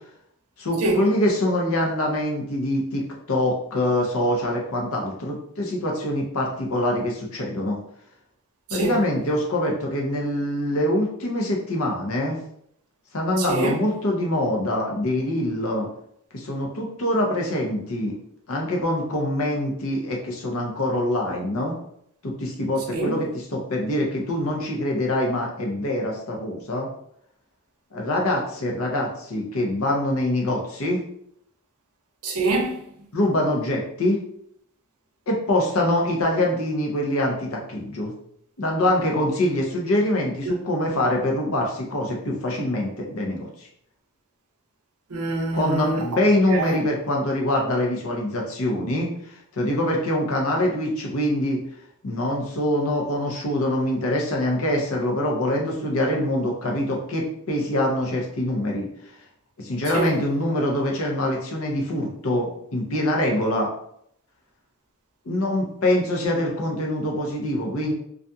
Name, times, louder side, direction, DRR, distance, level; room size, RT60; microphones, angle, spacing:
voice 1, 0.6-7.8 8.7-12.4 13.1-15.9 16.3-18.2 18.5-21.7 22.2-26.9 27.9-31.0 33.1-34.2 35.3-38.1 38.6-43.7 45.5-51.6 52.0-58.9 59.6-63.7 65.2-67.9, left 1 dB, 70° left, 0.7 m, -24 dB
voice 2, 13.4-13.8 22.9-23.1 32.2-32.8 40.5-40.6 45.1-46.0 46.5-46.8 59.9-60.1, right 2 dB, 85° right, 0.6 m, -24 dB
2.4 x 2.2 x 2.6 m
head